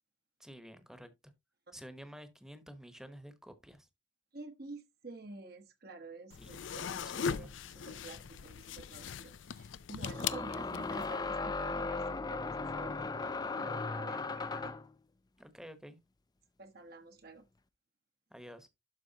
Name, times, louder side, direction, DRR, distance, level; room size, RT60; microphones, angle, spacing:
voice 1, 0.4-1.1 1.7-3.9 6.4-7.5 15.4-16.0 18.3-18.7, equal, 5° right, 1.0 m, -51 dB
voice 2, 4.3-14.7 16.6-17.4, right 3 dB, 55° right, 1.2 m, -50 dB
sound 1, 6.3-11.1, left 7 dB, 85° left, 0.5 m, -39 dB
sound 2, 8.1-8.2 10.1-14.9, left 3 dB, 20° left, 0.5 m, -37 dB
12.0 x 4.7 x 2.8 m
head